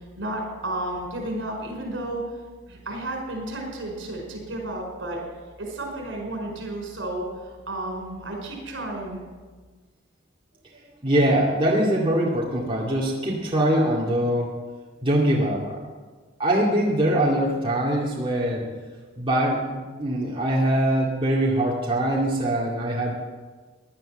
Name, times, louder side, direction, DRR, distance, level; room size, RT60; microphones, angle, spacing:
voice 1, 0.2-2.2 2.7-5.2 5.6-7.3 7.7-9.2, right 1 dB, 70° right, 1 dB, 5.3 m, -32 dB
voice 2, 11.0-14.5 15.0-15.8 16.4-18.7 19.2-23.2, right 1 dB, 25° right, -4 dB, 2.3 m, -23 dB
17.0 x 10.5 x 7.7 m, 1.4 s
head